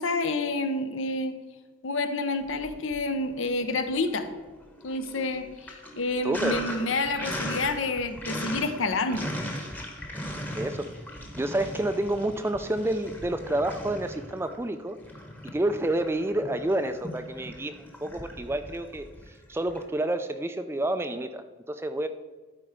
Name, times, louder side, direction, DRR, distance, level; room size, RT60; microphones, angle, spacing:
voice 1, 0.0-1.4 1.8-4.3 4.8-9.3, left 2 dB, 75° left, 9 dB, 0.8 m, -29 dB
Sink (filling or washing), 2.5-3.4 3.7-19.8, equal, 10° left, 1.0 m, -39 dB
voice 2, 6.2-6.6 10.6-10.9 11.4-15.0 15.4-22.1, right 1 dB, 10° right, 10 dB, 0.3 m, -29 dB
12.5 x 4.4 x 5.0 m, 1.4 s
head